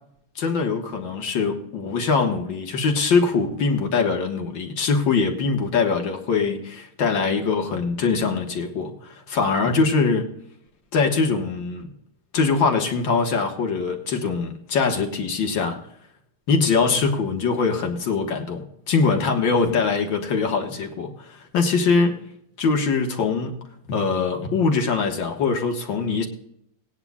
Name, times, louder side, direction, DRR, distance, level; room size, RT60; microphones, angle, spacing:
voice 1, 0.4-10.3 10.9-11.9 12.3-15.8 16.5-22.2 22.6-23.6 23.9-26.3, left 4 dB, 60° left, 3 dB, 2.2 m, -22 dB
19.5 x 10.0 x 2.4 m, 0.75 s
omnidirectional pair, 2.4 m